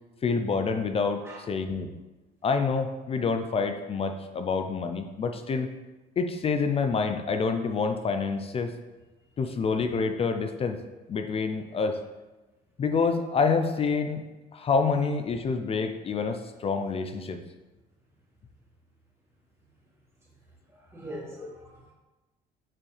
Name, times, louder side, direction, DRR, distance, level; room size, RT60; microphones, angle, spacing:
voice 1, 0.2-1.9 2.4-5.7 6.2-8.7 9.4-10.8 11.1-12.0 12.8-14.3 14.5-17.4 21.4-21.5, left 5 dB, 35° left, 7 dB, 0.5 m, -27 dB
voice 2, 20.7-21.9, right 1 dB, 15° right, -5 dB, 2.1 m, -42 dB
7.3 x 4.4 x 3.3 m, 1.1 s
cardioid pair, 110°, 17 cm